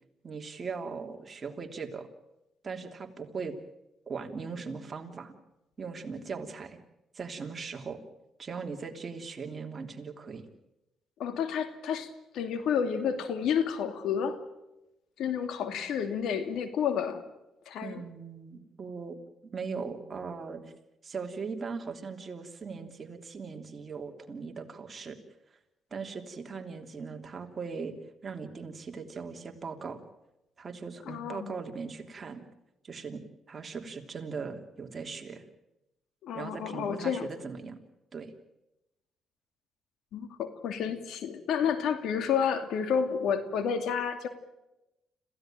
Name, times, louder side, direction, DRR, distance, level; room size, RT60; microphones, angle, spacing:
voice 1, 0.2-2.1 2.6-3.5 4.1-5.3 5.8-6.8 7.1-8.0 8.4-10.5 17.8-20.7 21.0-25.2 25.9-27.9 28.2-30.0 30.6-32.4 32.8-33.2 33.5-35.4 36.3-37.8 38.1-38.3, right 5 dB, 35° right, 4 dB, 3.1 m, -39 dB
voice 2, 11.2-14.4 15.2-17.2 17.7-18.0 31.1-31.5 36.2-37.3 40.1-44.3, left 7 dB, 80° left, 9 dB, 2.6 m, -30 dB
27.0 x 16.0 x 9.0 m, 0.95 s
cardioid pair, 90°, 0 cm